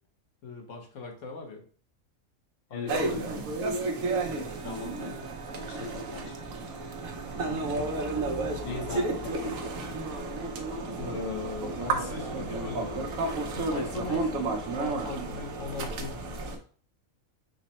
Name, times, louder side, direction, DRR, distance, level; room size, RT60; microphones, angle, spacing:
voice 1, 0.4-1.6 2.7-3.6 7.4-7.9 8.9-9.0 11.0-13.1 13.5-16.6, left 4 dB, 65° left, 3 dB, 1.2 m, -40 dB
sound 1, 2.9-16.6, right 3 dB, 85° right, 1.2 m, -32 dB
sound 2, 4.1-10.5, right 5 dB, 70° right, 1.0 m, -48 dB
voice 2, 4.6-5.2 5.5-6.9 8.6-10.0 14.1-14.3, left 4 dB, 45° left, 2 dB, 0.8 m, -40 dB
5.2 x 2.1 x 4.0 m, 0.43 s
omnidirectional pair, 1.4 m